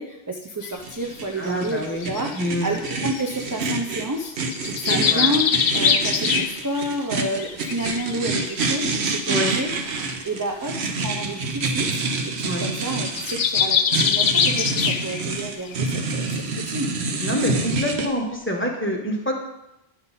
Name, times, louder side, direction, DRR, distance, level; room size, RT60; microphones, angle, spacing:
voice 1, 0.0-2.3 2.6-5.4 5.7-9.7 10.2-16.9, right 2 dB, 25° right, 1 dB, 0.5 m, -30 dB
sound 1, 0.6-0.8 1.5-3.8 4.2-6.9 7.2-8.8 9.2-9.3 9.5-9.8 10.8-10.9 11.1-11.2 11.5-11.7 12.1-12.2 12.5-15.4 15.7-15.9 16.3-16.4 17.0-17.1, left 7 dB, 75° left, 0.9 m, -24 dB
sound 2, 0.8-18.1, right 3 dB, 85° right, 1.1 m, -27 dB
voice 2, 1.4-2.1 2.3-2.7 4.9-5.3 9.3-9.6 12.4-12.7 17.2-19.3, left 1 dB, 10° left, 0 dB, 1.1 m, -26 dB
9.5 x 5.4 x 4.1 m, 0.89 s
omnidirectional pair, 1.1 m